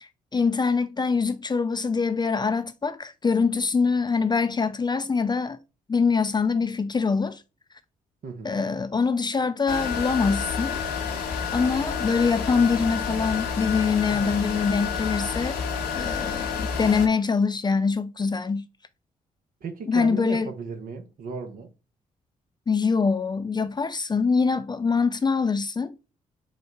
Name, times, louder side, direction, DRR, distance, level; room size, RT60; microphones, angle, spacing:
voice 1, 0.0-5.6 5.9-7.4 8.4-10.8 11.5-15.6 15.9-18.7 19.9-20.5 22.7-25.9, left 5 dB, 25° left, 0.5 m, -24 dB
voice 2, 8.2-8.6 19.6-21.7, right 4 dB, 55° right, 1.0 m, -36 dB
sound 1, 9.7-17.1, left 6 dB, 70° left, 0.9 m, -29 dB
4.3 x 2.3 x 4.5 m
hypercardioid pair, 40°, 18 cm